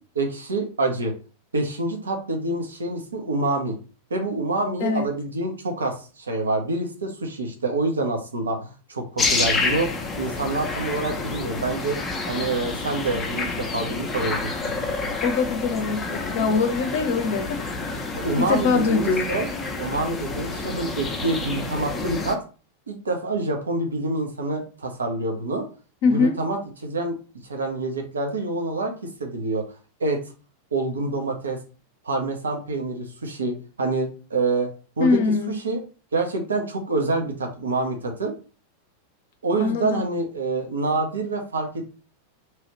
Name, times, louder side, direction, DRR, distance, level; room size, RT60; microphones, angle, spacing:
voice 1, 0.2-1.1 1.5-3.8 4.1-9.9 10.2-12.0 12.3-14.7 18.1-19.5 19.8-22.4 22.9-25.6 26.0-27.1 27.4-29.6 30.0-30.2 30.7-31.6 32.0-34.7 35.0-35.2 35.5-35.8 36.1-38.3 39.4-41.8, right 2 dB, 70° right, 0.8 m, -26 dB
sound 1, 9.2-22.4, left 3 dB, 15° left, 0.6 m, -29 dB
voice 2, 15.2-17.6 17.9-18.1 18.4-19.3 26.0-26.4 35.0-35.5 39.6-40.0, left 4 dB, 50° left, 0.7 m, -22 dB
3.0 x 2.4 x 3.0 m
figure-of-eight pair, 90°, 0 cm